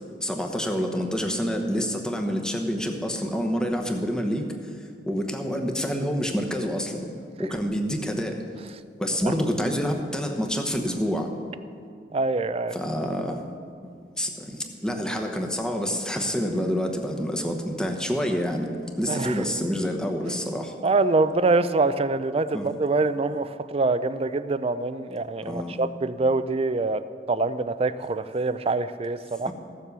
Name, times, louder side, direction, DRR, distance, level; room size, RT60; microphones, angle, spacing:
voice 1, 0.2-4.5 5.1-7.1 7.4-8.4 9.0-11.3 12.7-13.4 14.2-18.7 19.0-20.7 22.5-22.7 25.4-25.8 29.5-29.6, equal, 5° left, 3 dB, 1.0 m, -27 dB
voice 2, 12.1-12.8 19.1-19.4 20.8-27.0 27.3-29.5, right 3 dB, 35° right, 13 dB, 0.4 m, -25 dB
15.0 x 7.4 x 6.8 m, 2.3 s
head